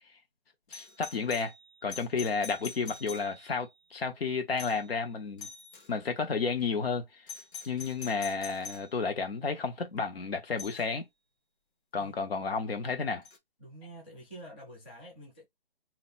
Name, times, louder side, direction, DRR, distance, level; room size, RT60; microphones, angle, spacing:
voice 1, 0.7-1.5 1.8-5.5 5.9-7.0 7.6-11.1 11.9-13.2, left 5 dB, 80° left, 1.2 m, -32 dB
Doorbell, 0.7-3.7 4.6-5.0 5.4-5.9 7.3-8.9 10.6-10.9 13.3-13.4, left 5 dB, 60° left, 1.1 m, -45 dB
voice 2, 13.6-15.5, right 1 dB, 10° left, 0.5 m, -48 dB
2.8 x 2.1 x 4.0 m
hypercardioid pair, 165°, 30 cm